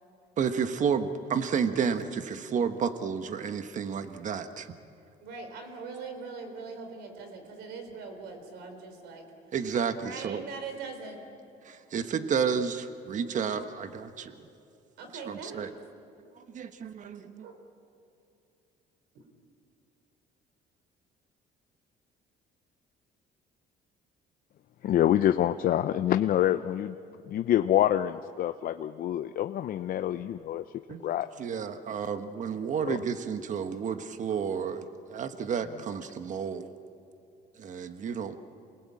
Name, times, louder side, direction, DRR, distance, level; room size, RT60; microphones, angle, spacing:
voice 1, 0.4-4.7 9.5-10.4 11.6-14.5 15.1-15.7 16.4-17.5 30.9-31.0 31.4-36.7 37.6-38.4, right 6 dB, 50° right, 9 dB, 1.3 m, -31 dB
voice 2, 5.2-9.3 10.0-11.2 15.0-15.7 17.4-17.6 19.1-19.3, right 4 dB, 85° right, 6 dB, 4.1 m, -41 dB
voice 3, 24.8-27.0 27.3-30.6 31.0-31.3 32.8-33.0, left 11 dB, 55° left, 9 dB, 0.6 m, -26 dB
28.0 x 19.5 x 8.6 m, 2.6 s
cardioid pair, 110°, 17 cm